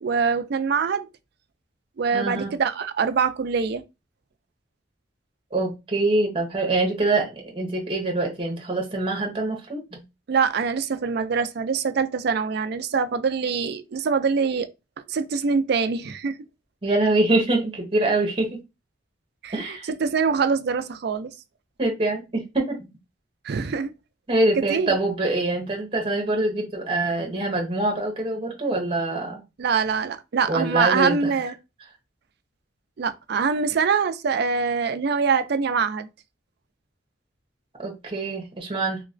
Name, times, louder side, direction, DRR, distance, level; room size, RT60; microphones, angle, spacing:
voice 1, 0.0-1.1 2.0-3.8 10.3-14.7 15.1-16.4 19.4-21.3 23.4-23.9 24.6-25.0 29.6-31.5 33.0-36.1, right 5 dB, 60° right, 0.4 m, -24 dB
voice 2, 2.1-2.5 5.5-10.0 16.8-18.6 19.5-19.9 21.8-22.9 24.3-29.4 30.5-31.2 37.8-39.0, right 2 dB, 30° right, 0.8 m, -24 dB
3.1 x 2.8 x 2.6 m
head